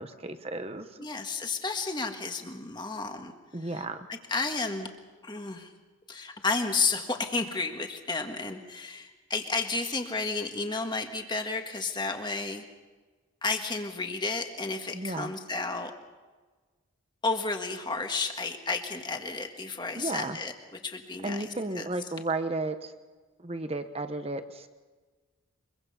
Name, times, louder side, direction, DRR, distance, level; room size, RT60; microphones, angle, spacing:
voice 1, 0.0-1.0 3.5-4.1 14.9-15.3 19.9-20.4 21.2-22.9 23.4-24.7, right 2 dB, 30° right, 9 dB, 1.0 m, -33 dB
voice 2, 1.0-3.3 4.3-4.9 5.2-5.7 6.1-12.6 13.4-15.9 17.2-20.5 20.8-21.4 21.8-21.9, left 3 dB, 20° left, 5 dB, 1.6 m, -32 dB
24.0 x 22.5 x 5.7 m, 1.3 s
head